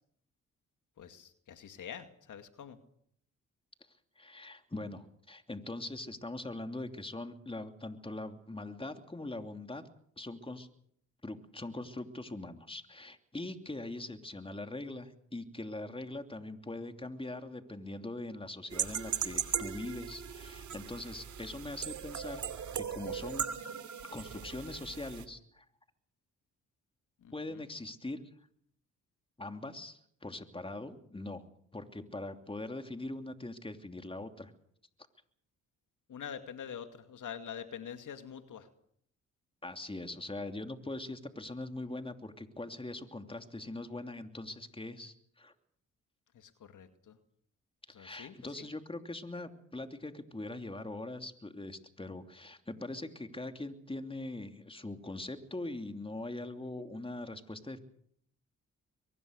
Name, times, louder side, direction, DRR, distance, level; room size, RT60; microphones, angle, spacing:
voice 1, 1.0-2.8 27.2-27.7 36.1-38.7 46.3-47.2 47.9-48.7, left 8 dB, 65° left, 8 dB, 2.3 m, -46 dB
voice 2, 4.2-9.8 10.2-10.7 11.2-23.5 24.0-25.6 27.3-28.2 29.4-31.4 31.7-34.5 39.6-45.5 47.9-57.8, left 2 dB, 15° left, 7 dB, 2.9 m, -42 dB
sound 1, 18.7-25.2, right 8 dB, 60° right, 2.7 m, -38 dB
23.5 x 20.5 x 6.6 m, 0.66 s
supercardioid pair, 55°, 33 cm